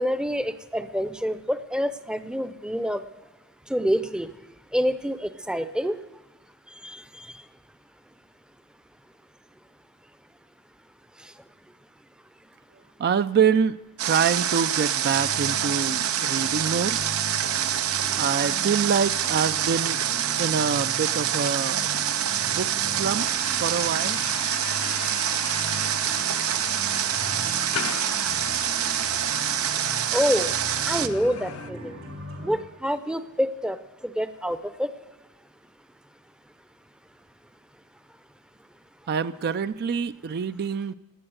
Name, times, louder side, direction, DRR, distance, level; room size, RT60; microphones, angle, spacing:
voice 1, 0.0-3.0 3.7-4.3 4.7-6.0 6.8-7.4 11.2-11.3 30.1-30.5 30.9-32.0 32.4-33.8 34.0-34.9, equal, 5° right, 12 dB, 0.6 m, -27 dB
voice 2, 13.0-13.8 14.0-17.0 18.2-20.0 20.4-21.9 22.4-23.3 23.6-24.2 39.1-40.9, right 6 dB, 50° right, 13 dB, 0.4 m, -25 dB
Water, 14.0-31.1, right 10 dB, 90° right, 0.7 m, -26 dB
sound 1, 15.1-32.6, equal, 70° right, 4.4 m, -40 dB
sound 2, 23.3-31.7, left 8 dB, 75° left, 0.6 m, -38 dB
16.5 x 9.9 x 7.9 m, 1.2 s
head